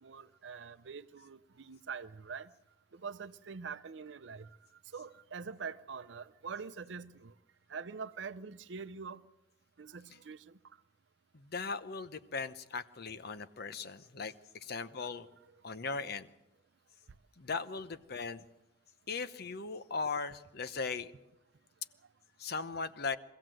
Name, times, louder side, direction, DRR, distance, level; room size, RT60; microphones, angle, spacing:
voice 1, 0.0-2.5 2.9-4.5 4.9-7.3 7.7-9.2 9.8-10.5 15.0-15.1, right 5 dB, 75° right, 0.6 m, -44 dB
voice 2, 11.3-15.3 15.6-16.3 17.4-18.4 19.1-21.1 22.4-23.2, left 4 dB, 60° left, 0.8 m, -38 dB
23.5 x 15.5 x 7.7 m
head